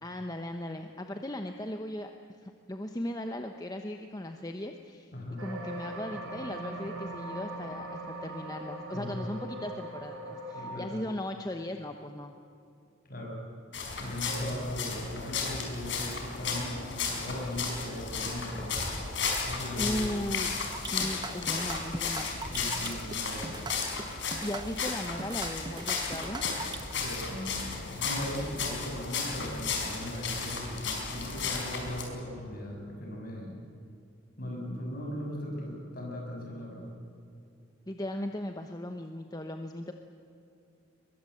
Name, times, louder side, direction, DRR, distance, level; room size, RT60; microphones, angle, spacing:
voice 1, 0.0-5.1 5.4-12.3 19.8-20.5 20.8-22.3 24.4-26.6 37.9-39.9, left 1 dB, 20° left, 5 dB, 1.0 m, -37 dB
voice 2, 5.1-5.5 8.9-9.3 10.5-11.0 13.0-13.4 14.0-18.8 19.4-20.0 22.5-23.6 26.9-33.6 34.4-36.9, equal, 45° left, 0 dB, 6.7 m, -38 dB
sound 1, 5.4-10.8, right 1 dB, 85° right, 7.5 m, -40 dB
sound 2, 13.7-32.0, left 5 dB, 60° left, 4.9 m, -34 dB
sound 3, 20.7-26.9, right 3 dB, 20° right, 0.7 m, -41 dB
23.0 x 22.0 x 7.9 m, 2.6 s
head